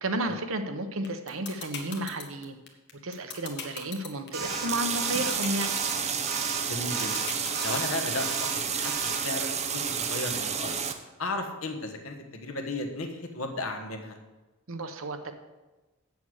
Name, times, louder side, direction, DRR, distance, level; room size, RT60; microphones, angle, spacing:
voice 1, 0.0-2.6 3.0-5.7 14.7-15.3, right 1 dB, 70° right, 7 dB, 1.0 m, -32 dB
sound 1, 1.0-8.0, left 6 dB, 55° left, 1.6 m, -38 dB
sound 2, 4.3-4.7 5.0-5.3 5.6-6.0 6.2-6.6 6.9-7.3 7.5-7.9 8.2-8.5 8.8-9.2, right 5 dB, 50° right, 1.7 m, -34 dB
sound 3, 4.4-10.9, right 6 dB, 35° right, 0.8 m, -31 dB
voice 2, 6.6-7.3 7.6-10.8 11.2-14.2, left 2 dB, 75° left, 4 dB, 1.4 m, -35 dB
7.8 x 7.0 x 8.1 m, 1.1 s
head